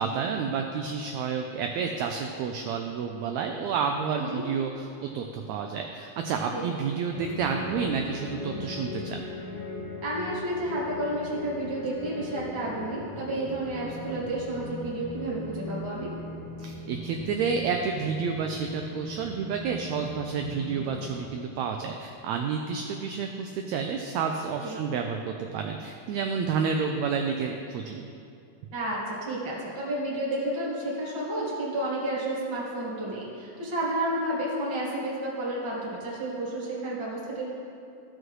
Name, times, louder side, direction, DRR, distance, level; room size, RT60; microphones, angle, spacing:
voice 1, 0.0-9.2 16.6-28.1, right 6 dB, 85° right, 3 dB, 1.6 m, -30 dB
sound 1, 7.1-21.2, left 2 dB, 55° left, 1.3 m, -39 dB
voice 2, 10.0-16.1 24.6-24.7 28.7-37.5, right 1 dB, 20° right, -6 dB, 0.8 m, -31 dB
14.5 x 6.2 x 3.2 m, 2.5 s
omnidirectional pair, 3.7 m